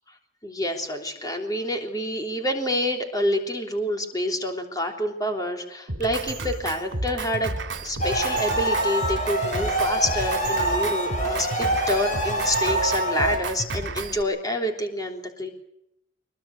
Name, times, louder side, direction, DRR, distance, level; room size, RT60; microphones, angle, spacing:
voice 1, 0.4-7.5 7.8-15.5, left 1 dB, 20° left, 3 dB, 3.4 m, -27 dB
Drum kit, 5.9-14.2, right 2 dB, 65° right, 3.2 m, -32 dB
sound 1, 8.0-13.4, right 1 dB, 40° left, 6.7 m, -25 dB
24.0 x 22.5 x 6.6 m, 0.79 s
head